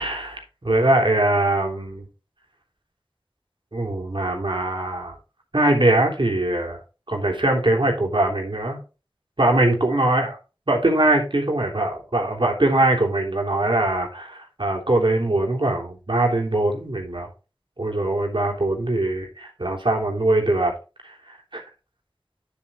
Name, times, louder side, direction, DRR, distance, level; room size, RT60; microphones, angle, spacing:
voice 1, 0.0-2.0 3.7-5.1 5.5-6.8 7.1-8.8 9.4-10.4 10.7-17.3 17.8-20.7 21.0-21.6, right 1 dB, 60° right, 1 dB, 3.2 m, -22 dB
10.0 x 7.0 x 3.6 m, 0.31 s
wide cardioid pair, 40°, 9 cm